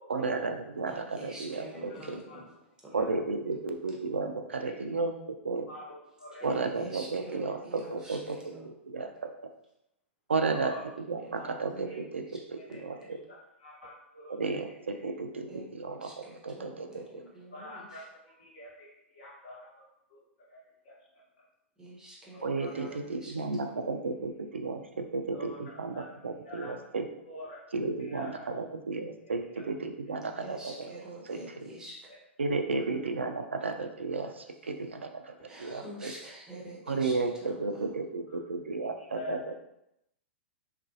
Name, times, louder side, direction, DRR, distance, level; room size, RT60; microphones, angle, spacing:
voice 1, 0.1-2.2 2.9-5.1 5.4-5.7 6.4-8.2 8.8-9.3 10.3-10.7 11.1-13.2 14.3-17.2 22.4-27.1 27.7-31.7 32.4-35.3 35.6-36.1 36.9-39.4, right 3 dB, 75° right, 6 dB, 0.3 m, -33 dB
voice 2, 0.9-2.5 6.4-8.2 8.5-8.7 11.2-11.3 11.7-11.9 15.5-17.9 21.8-23.3 30.4-32.0 35.5-37.1 37.5-37.6, right 1 dB, 10° right, -4 dB, 0.7 m, -46 dB
voice 3, 1.9-2.4 2.9-3.1 5.7-6.5 7.8-7.9 10.5-10.8 11.4-11.6 11.8-12.0 12.5-14.4 15.0-15.1 17.5-19.8 20.1-20.2 20.5-20.6 20.8-20.9 22.3-23.0 25.3-26.0 26.4-26.7 27.2-27.6 28.0-28.6 29.5-29.6 32.1-32.2 32.7-32.8 38.3-38.4 39.1-39.4, left 1 dB, 50° left, -5 dB, 1.0 m, -46 dB
2.9 x 2.5 x 2.5 m, 0.82 s
figure-of-eight pair, 105°, 7 cm